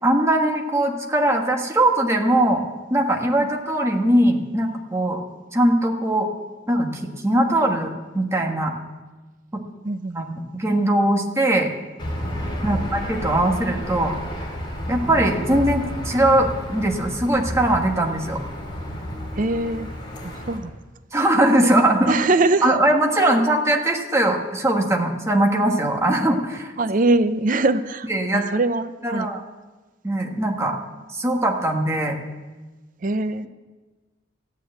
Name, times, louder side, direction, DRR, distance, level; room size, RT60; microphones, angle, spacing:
voice 1, 0.0-2.6 2.9-5.2 5.5-6.3 6.7-8.7 9.5-9.6 10.1-11.7 12.6-14.1 14.9-18.4 21.1-22.2 22.6-26.7 28.1-28.4 29.0-29.4 30.0-30.8 31.1-32.2, right 1 dB, 15° right, 2 dB, 1.5 m, -20 dB
voice 2, 9.8-10.2 12.6-12.8 19.3-19.9 20.2-20.7 21.6-21.7 22.1-22.8 23.2-23.3 26.8-29.3 33.0-33.5, right 2 dB, 45° right, 12 dB, 0.6 m, -22 dB
Aircraft / Engine, 12.0-20.6, equal, 25° left, 2.7 m, -31 dB
15.0 x 9.4 x 7.8 m, 1.3 s
head